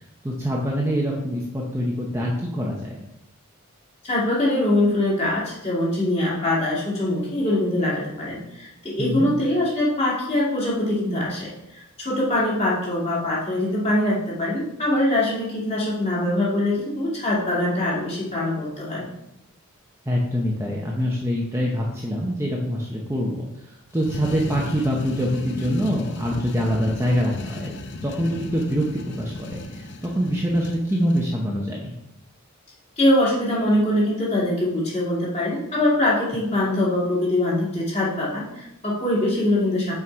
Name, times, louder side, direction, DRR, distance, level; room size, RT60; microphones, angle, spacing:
voice 1, 0.2-2.9 9.0-9.3 20.1-23.5 23.9-27.7 28.0-31.9, equal, 10° right, -3 dB, 0.7 m, -25 dB
voice 2, 4.0-19.1 33.0-39.9, left 1 dB, 30° left, -6 dB, 2.3 m, -23 dB
sound 1, 23.9-31.3, left 2 dB, 55° left, 0.6 m, -35 dB
6.0 x 4.7 x 4.5 m, 0.87 s
head